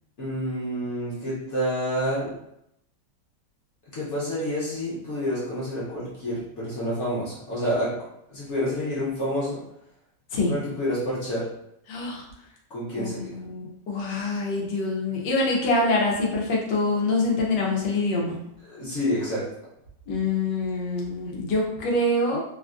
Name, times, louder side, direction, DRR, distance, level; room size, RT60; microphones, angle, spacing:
voice 1, 0.2-2.3 3.9-7.9 8.3-9.6 10.5-11.5 12.7-13.3 18.7-19.5, equal, 50° left, -7 dB, 1.0 m, -28 dB
voice 2, 11.9-12.2 13.0-18.4 20.1-22.4, left 2 dB, 90° left, -2 dB, 1.4 m, -25 dB
3.3 x 2.3 x 2.4 m, 0.80 s
omnidirectional pair, 1.8 m